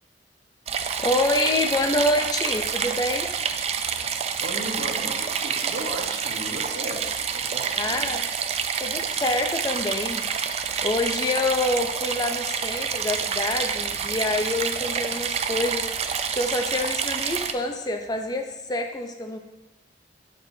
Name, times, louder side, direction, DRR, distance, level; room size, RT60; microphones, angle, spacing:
sound 1, 0.7-17.5, right 7 dB, 35° right, 0.3 m, -28 dB
voice 1, 1.0-3.3 7.8-8.2 8.8-10.2 10.8-15.9 16.3-19.4, left 2 dB, 25° left, 4 dB, 0.5 m, -26 dB
voice 2, 4.4-7.0 7.3-8.1, right 1 dB, 80° right, 0 dB, 1.1 m, -35 dB
6.4 x 6.1 x 2.7 m, 1.1 s
head